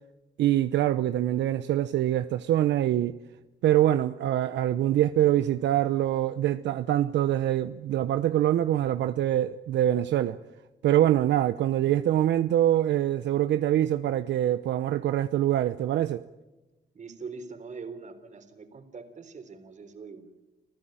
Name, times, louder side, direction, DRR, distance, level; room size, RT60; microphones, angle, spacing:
voice 1, 0.4-3.1 3.6-10.4 10.8-16.2, right 12 dB, 75° right, 0.8 m, -24 dB
voice 2, 16.9-20.3, right 4 dB, 40° right, 3.7 m, -42 dB
27.5 x 15.5 x 8.9 m
cardioid pair, 105°, 19 cm